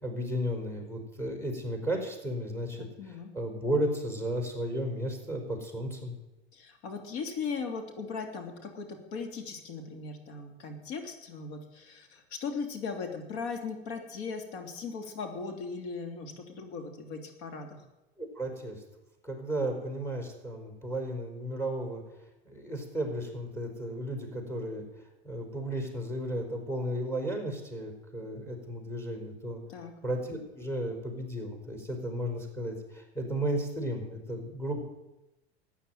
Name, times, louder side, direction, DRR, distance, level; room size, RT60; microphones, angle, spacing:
voice 1, 0.0-6.1 18.2-18.8 19.2-22.0 22.4-24.9 25.2-29.6 30.0-34.8, right 1 dB, 10° left, 3 dB, 4.8 m, -34 dB
voice 2, 2.8-3.3 6.5-17.8 29.7-29.9, left 5 dB, 55° left, 4 dB, 3.1 m, -38 dB
14.0 x 9.6 x 9.3 m, 1.0 s
hypercardioid pair, 95°, 31 cm